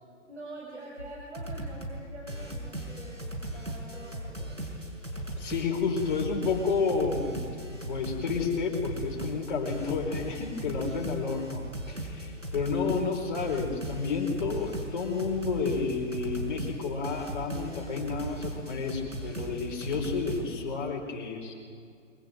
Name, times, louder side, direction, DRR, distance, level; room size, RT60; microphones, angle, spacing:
voice 1, 0.3-4.6, right 2 dB, 65° right, -2 dB, 6.0 m, -45 dB
sound 1, 1.0-1.1 1.3-2.0 2.3-20.4, right 1 dB, 85° right, 6.1 m, -37 dB
voice 2, 5.4-21.5, left 4 dB, 40° left, 1 dB, 4.7 m, -31 dB
25.0 x 23.5 x 7.8 m, 2.3 s
figure-of-eight pair, 130°, 37 cm